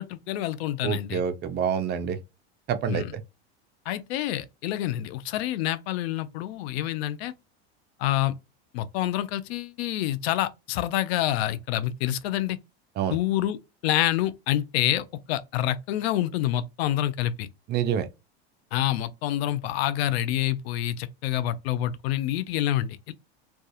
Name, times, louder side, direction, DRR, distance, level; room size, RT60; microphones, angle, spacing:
voice 1, 0.0-1.2 2.9-3.1 3.9-7.3 8.0-8.3 8.7-12.6 13.1-17.5 18.7-23.1, left 13 dB, 75° left, 0.5 m, -27 dB
voice 2, 0.8-2.2 2.7-3.2 13.0-13.2 17.7-18.1, right 8 dB, 35° right, 0.4 m, -27 dB
2.3 x 2.3 x 2.7 m
supercardioid pair, 115°, 32 cm